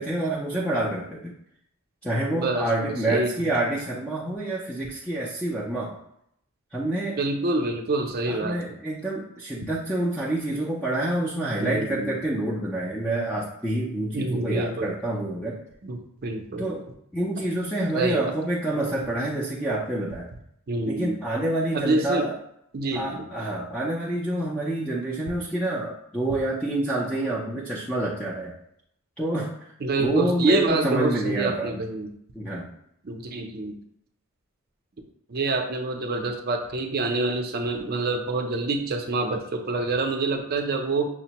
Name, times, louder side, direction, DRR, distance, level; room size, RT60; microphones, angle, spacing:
voice 1, 0.0-1.3 2.0-6.0 6.7-7.2 8.3-15.6 16.6-16.9 17.1-20.3 20.9-22.4 22.9-28.5 29.2-29.6 30.0-31.8 32.3-32.7, right 1 dB, 5° left, -6 dB, 0.4 m, -27 dB
voice 2, 2.3-3.3 7.2-8.8 11.6-12.1 14.1-14.9 15.8-16.7 17.9-18.3 20.7-21.2 21.7-22.3 22.7-23.3 29.8-32.1 33.0-33.8 35.3-41.1, right 2 dB, 45° right, 4 dB, 0.5 m, -27 dB
5.8 x 2.1 x 2.8 m, 0.74 s
head